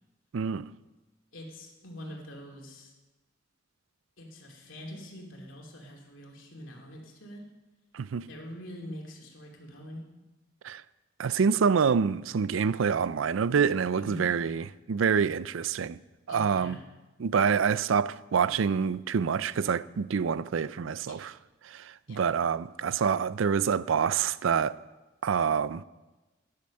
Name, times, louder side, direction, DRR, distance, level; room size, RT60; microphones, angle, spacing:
voice 1, 0.3-0.7 7.9-8.3 10.6-10.8 11.2-16.0 16.3-16.8 17.2-21.3 21.6-24.8 25.2-25.8, right 6 dB, 85° right, 0.4 m, -27 dB
voice 2, 1.3-2.9 4.2-7.5 8.3-10.1 14.0-14.3 16.3-16.8 21.1-21.2 22.1-22.2, equal, 80° left, 2.8 m, -44 dB
12.0 x 10.5 x 6.5 m
head